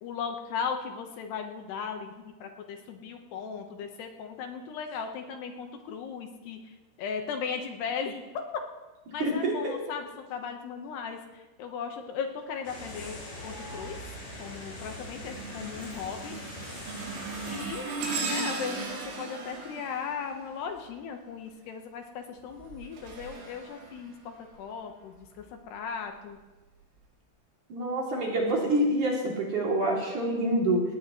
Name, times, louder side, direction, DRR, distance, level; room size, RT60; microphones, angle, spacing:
voice 1, 0.0-6.6 7.0-8.2 9.1-13.2 13.4-14.0 14.4-16.3 17.5-17.9 18.2-26.4, left 6 dB, 70° left, 4 dB, 3.0 m, -37 dB
voice 2, 9.2-9.7 27.7-30.8, right 1 dB, 45° right, -3 dB, 4.1 m, -26 dB
sound 1, 12.6-17.6, left 1 dB, 40° left, 6.5 m, -42 dB
sound 2, 13.4-13.8 14.3-21.1 22.4-24.6 25.2-25.4 26.3-26.4, right 4 dB, 75° right, 5.6 m, -38 dB
19.0 x 17.5 x 3.2 m, 1.1 s
omnidirectional pair, 5.5 m